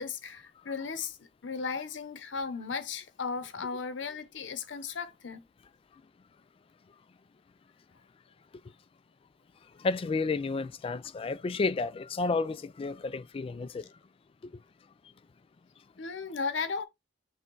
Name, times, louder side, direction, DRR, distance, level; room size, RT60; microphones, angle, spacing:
voice 1, 0.0-5.4 16.0-16.8, left 5 dB, 80° left, 0.8 m, -36 dB
voice 2, 9.8-13.9, left 3 dB, 30° left, 0.3 m, -31 dB
6.2 x 2.2 x 3.8 m
head